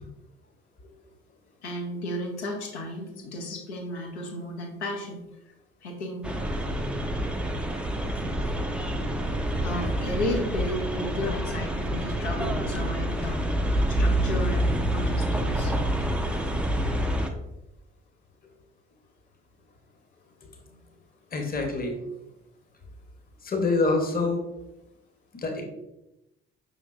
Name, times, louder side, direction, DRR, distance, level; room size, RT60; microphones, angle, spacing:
voice 1, 1.6-5.2 5.8-6.4 9.6-13.4 13.9-15.7, left 1 dB, 75° left, 2 dB, 0.8 m, -33 dB
sound 1, 6.2-17.3, right 1 dB, 5° right, 0.4 m, -27 dB
voice 2, 21.3-22.0 23.4-24.4 25.3-25.6, left 3 dB, 25° left, 3 dB, 0.9 m, -26 dB
5.2 x 3.7 x 2.4 m, 0.92 s
figure-of-eight pair, 45°, 34 cm